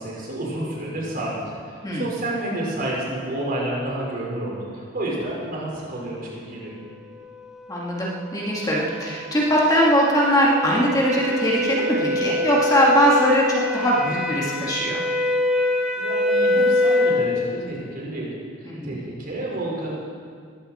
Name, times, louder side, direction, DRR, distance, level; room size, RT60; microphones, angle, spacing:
voice 1, 0.0-6.7 16.0-18.3 18.6-19.9, right 1 dB, 45° right, -4 dB, 5.0 m, -30 dB
sound 1, 7.4-17.3, left 1 dB, 5° right, 1.6 m, -25 dB
voice 2, 7.7-15.0 18.7-19.0, equal, 20° left, -4 dB, 2.2 m, -21 dB
20.0 x 15.5 x 4.4 m, 2.1 s
head